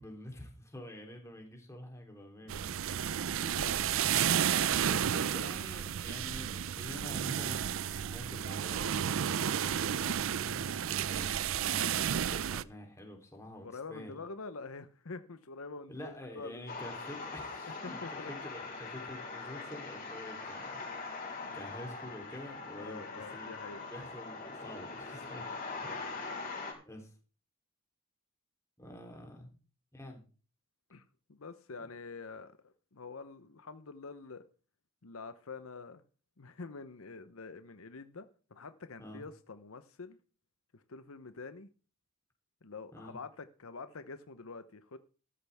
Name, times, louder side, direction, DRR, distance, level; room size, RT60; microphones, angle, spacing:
voice 1, 0.0-2.7 3.1-3.8 4.5-9.5 9.8-14.2 15.9-25.5 25.8-26.4 26.8-27.1 28.8-29.5 29.9-30.2 31.8-31.9 39.0-39.2 42.9-43.2, left 1 dB, 15° left, 3.3 m, -48 dB
sound 1, 2.5-12.6, right 9 dB, 65° right, 0.5 m, -32 dB
voice 2, 3.2-3.8 13.6-16.7 17.8-18.3 21.4-21.7 22.7-23.9 30.9-34.4 35.0-36.0 36.4-40.2 40.7-41.7 42.6-45.0, left 4 dB, 75° left, 0.8 m, -46 dB
sound 2, 16.7-26.7, left 3 dB, 40° left, 4.7 m, -42 dB
13.5 x 12.5 x 3.5 m
head